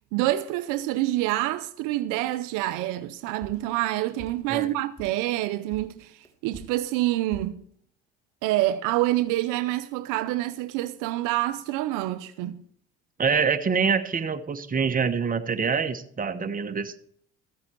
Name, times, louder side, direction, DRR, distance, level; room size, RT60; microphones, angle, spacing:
voice 1, 0.1-7.5 8.4-12.6, right 16 dB, 75° right, 0.6 m, -27 dB
sound 1, 3.4-5.3 5.7-7.6, equal, 10° left, 1.8 m, -45 dB
voice 2, 13.2-17.0, right 6 dB, 25° right, 1.1 m, -25 dB
14.5 x 7.9 x 4.5 m
supercardioid pair, 75°, 32 cm